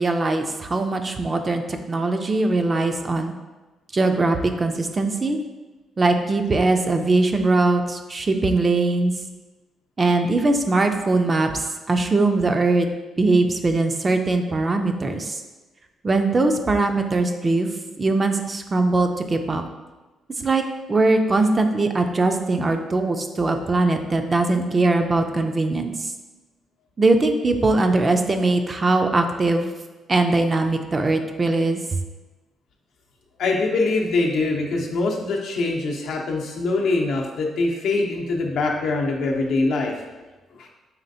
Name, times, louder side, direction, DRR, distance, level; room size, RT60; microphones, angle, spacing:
voice 1, 0.0-1.6 1.9-3.3 3.9-5.4 6.0-9.1 10.0-12.9 13.2-15.4 16.0-17.7 18.0-19.6 20.4-20.6 20.9-25.9 27.0-29.7 30.1-32.0, right 2 dB, 30° right, 6 dB, 0.4 m, -21 dB
voice 2, 33.4-39.9 40.6-40.7, left 3 dB, 75° left, 0 dB, 0.6 m, -23 dB
4.2 x 3.2 x 2.7 m, 1.2 s
cardioid pair, 90°, 0 cm